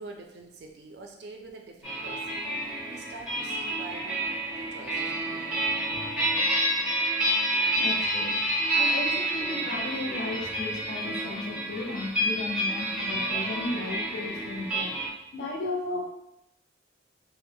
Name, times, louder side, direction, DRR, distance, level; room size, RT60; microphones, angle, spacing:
voice 1, 0.0-2.4 2.9-5.7, right 3 dB, 55° right, 2 dB, 0.3 m, -45 dB
sound 1, 1.8-15.1, right 1 dB, 5° right, 0.5 m, -29 dB
voice 2, 7.5-8.3 8.7-14.9 15.3-16.1, left 2 dB, 55° left, -1 dB, 0.5 m, -34 dB
2.3 x 2.0 x 2.6 m, 0.83 s
head